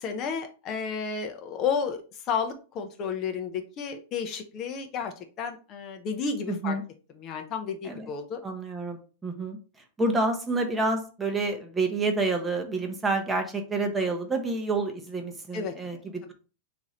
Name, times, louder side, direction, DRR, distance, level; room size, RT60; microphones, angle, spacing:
voice 1, 0.0-6.8 7.2-8.4 15.5-15.7, left 6 dB, 35° left, 6 dB, 0.4 m, -32 dB
voice 2, 6.5-6.8 7.8-8.1 8.4-9.6 10.0-16.3, right 3 dB, 10° right, 4 dB, 0.6 m, -28 dB
3.0 x 2.5 x 4.0 m, 0.36 s
supercardioid pair, 145°, 0 cm